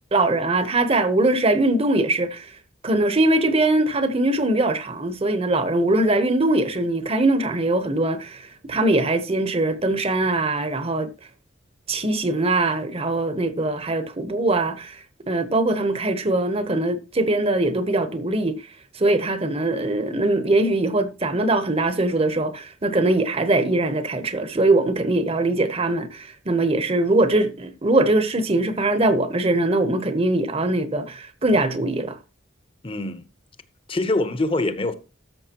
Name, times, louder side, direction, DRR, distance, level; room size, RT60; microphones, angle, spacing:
voice 1, 0.1-2.5 2.8-11.1 11.9-15.0 15.3-18.5 18.9-32.2, right 2 dB, 30° right, 0.9 m, -22 dB
voice 2, 32.8-33.2 33.9-34.9, left 2 dB, 30° left, 0.8 m, -24 dB
13.5 x 6.5 x 2.9 m
head